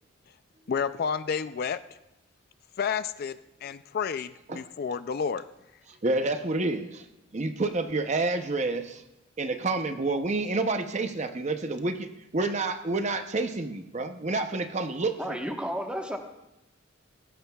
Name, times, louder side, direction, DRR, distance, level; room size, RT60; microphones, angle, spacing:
voice 1, 0.7-1.8 2.8-5.4, left 6 dB, 50° left, 12 dB, 0.3 m, -30 dB
voice 2, 6.0-7.0 7.3-9.0 9.4-12.1 12.3-15.4, right 3 dB, 35° right, 8 dB, 0.7 m, -28 dB
voice 3, 15.2-16.2, equal, 5° right, 3 dB, 1.2 m, -32 dB
19.5 x 16.0 x 2.3 m, 0.93 s
head